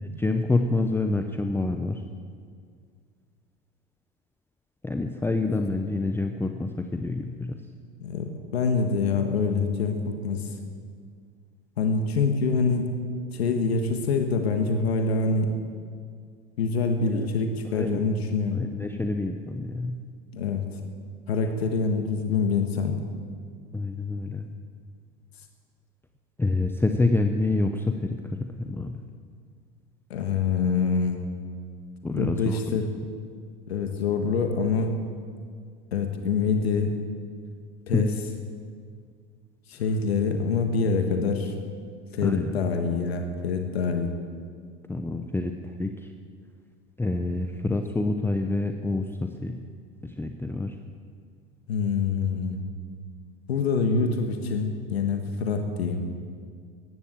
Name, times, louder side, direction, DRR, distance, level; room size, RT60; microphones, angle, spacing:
voice 1, 0.0-2.0 4.8-7.5 17.1-17.3 17.7-18.0 18.5-20.0 23.7-24.5 26.4-29.0 32.0-32.9 37.9-38.1 42.2-42.5 44.9-45.5 45.8-45.9 47.0-49.6 50.0-50.7, left 2 dB, 5° left, 6 dB, 0.7 m, -27 dB
voice 2, 8.0-10.0 10.2-10.5 11.8-12.9 13.3-15.5 16.6-18.6 20.3-20.6 21.3-23.0 30.1-31.2 32.1-32.9 33.7-35.0 35.9-36.9 37.9-38.1 39.7-41.5 42.1-44.1 51.7-52.6 53.5-56.1, left 4 dB, 85° left, 5 dB, 1.4 m, -25 dB
14.5 x 11.0 x 7.5 m, 2.1 s
hypercardioid pair, 90°, 31 cm